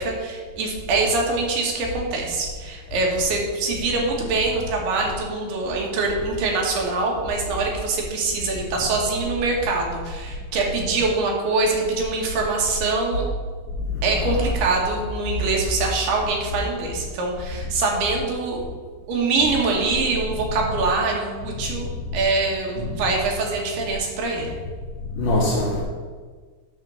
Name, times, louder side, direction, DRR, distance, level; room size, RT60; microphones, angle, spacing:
voice 1, 0.0-13.2 14.0-18.6 19.1-21.9 22.1-24.5, right 3 dB, 80° right, -1 dB, 3.4 m, -24 dB
voice 2, 25.1-25.8, left 1 dB, 65° left, -5 dB, 2.7 m, -23 dB
11.0 x 3.7 x 6.8 m, 1.5 s
omnidirectional pair, 4.6 m